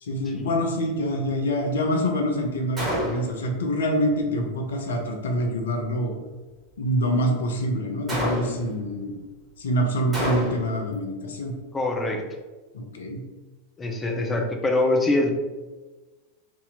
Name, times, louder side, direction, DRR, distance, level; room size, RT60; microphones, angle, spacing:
voice 1, 0.0-6.1 6.8-9.1 9.6-11.5 12.7-13.2, equal, 65° left, 3 dB, 0.6 m, -26 dB
Gunshot gunfire, 2.8-3.4 8.1-8.8 10.1-10.8, equal, 15° right, 1.5 m, -28 dB
voice 2, 11.7-12.2 13.8-15.3, left 2 dB, 15° left, 2 dB, 0.6 m, -24 dB
2.7 x 2.7 x 4.0 m, 1.2 s
figure-of-eight pair, 90°, 0 cm